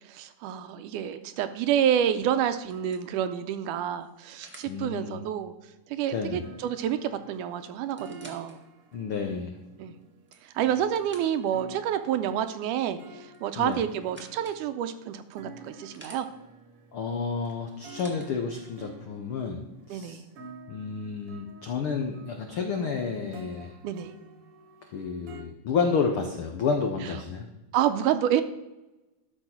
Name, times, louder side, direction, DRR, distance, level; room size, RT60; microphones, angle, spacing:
voice 1, 0.1-5.5 5.9-8.6 9.8-9.9 10.4-16.3 19.9-20.2 23.8-24.1 27.7-28.4, right 10 dB, 80° right, 10 dB, 2.1 m, -28 dB
sound 1, 2.7-4.8 6.8-6.9 7.1-7.2 7.8-8.6 9.2-9.3 10.0-11.6 13.3-14.6 15.3-16.2 17.4-18.3 19.2-19.3, right 1 dB, 10° right, 0.5 m, -52 dB
voice 2, 4.7-5.2 6.1-6.5 8.9-9.6 13.6-13.8 16.9-19.6 19.9-20.2 20.7-23.7 24.9-27.5, left 5 dB, 80° left, 4 dB, 1.2 m, -30 dB
sound 2, 6.3-25.4, right 3 dB, 60° right, 1.6 m, -50 dB
12.5 x 6.3 x 6.1 m, 1.0 s
omnidirectional pair, 3.8 m